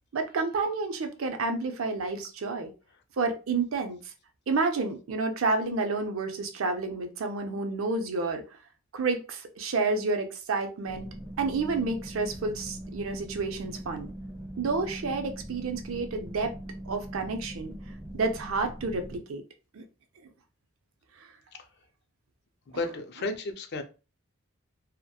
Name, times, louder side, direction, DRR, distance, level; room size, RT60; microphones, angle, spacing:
voice 1, 0.1-2.7 3.2-4.0 4.5-8.4 8.9-11.1 11.4-14.1 14.6-16.5 16.9-17.7 18.1-19.4 19.7-19.8, right 3 dB, 80° right, 0.5 m, -30 dB
sound 1, 10.9-19.2, right 1 dB, 15° right, 1.0 m, -41 dB
voice 2, 22.7-23.8, left 2 dB, 55° left, 0.4 m, -33 dB
2.8 x 2.1 x 2.2 m
head